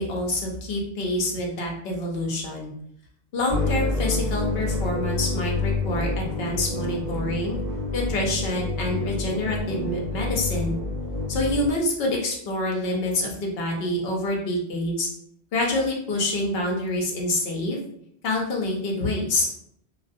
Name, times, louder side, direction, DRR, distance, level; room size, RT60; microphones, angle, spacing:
voice 1, 0.0-2.7 3.3-7.6 7.9-10.8 11.3-15.1 15.5-17.8 18.2-19.5, left 1 dB, 70° left, -1 dB, 0.9 m, -27 dB
sound 1, 3.5-11.7, left 3 dB, 30° right, 1.3 m, -28 dB
2.3 x 2.2 x 2.5 m, 0.71 s
omnidirectional pair, 1.1 m